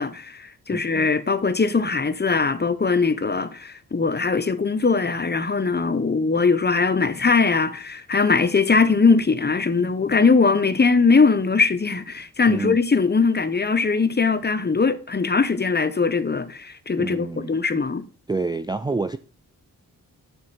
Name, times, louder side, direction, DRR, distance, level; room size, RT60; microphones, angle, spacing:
voice 1, 0.0-18.1, left 4 dB, 30° left, 0.8 m, -21 dB
voice 2, 0.7-1.1 12.5-12.8 17.0-17.6 18.3-19.2, right 3 dB, 15° right, 0.4 m, -28 dB
9.5 x 4.3 x 5.6 m
cardioid pair, 65°, 35 cm